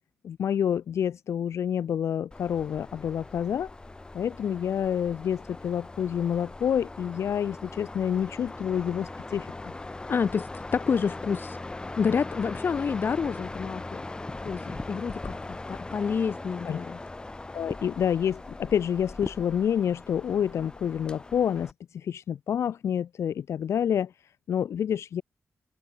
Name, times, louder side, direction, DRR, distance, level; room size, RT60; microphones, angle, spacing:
voice 1, 0.2-3.7 4.1-9.5 14.6-14.8 16.7-16.8 17.5-25.2, left 9 dB, 80° left, 1.9 m, -28 dB
sound 1, 2.3-21.7, left 2 dB, 20° left, 1.9 m, -40 dB
voice 2, 10.1-11.6 12.0-14.0 14.4-17.0, left 6 dB, 50° left, 1.0 m, -28 dB
wide cardioid pair, 135°, 5 cm